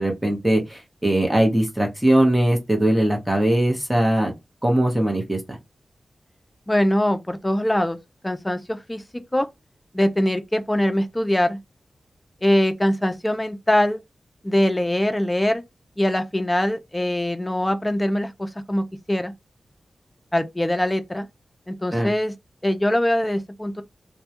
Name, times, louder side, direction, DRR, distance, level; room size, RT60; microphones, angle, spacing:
voice 1, 0.0-4.3 4.6-5.4 21.9-22.1, right 1 dB, 10° right, 0.9 m, -20 dB
voice 2, 6.7-8.0 8.2-9.0 9.3-9.5 9.9-11.6 12.4-14.0 14.4-15.6 16.0-19.3 20.3-21.3 21.7-22.3 22.6-23.8, left 1 dB, 15° left, 0.4 m, -22 dB
2.2 x 2.1 x 2.8 m
wide cardioid pair, 70°, 0 cm